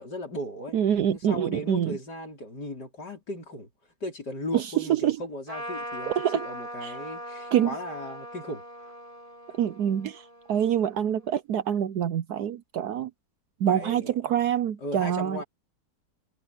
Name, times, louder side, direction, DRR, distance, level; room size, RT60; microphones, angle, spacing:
voice 1, 0.0-0.8 1.1-3.7 4.0-8.6 13.7-14.1 14.8-15.4, left 1 dB, 65° left, 5.7 m, -36 dB
voice 2, 0.7-2.0 4.5-5.2 6.1-6.5 6.8-6.9 7.5-7.7 9.6-13.1 13.6-15.4, right 10 dB, 70° right, 1.2 m, -26 dB
Trumpet, 5.5-11.3, right 1 dB, 20° right, 5.6 m, -40 dB
omnidirectional pair, 1.9 m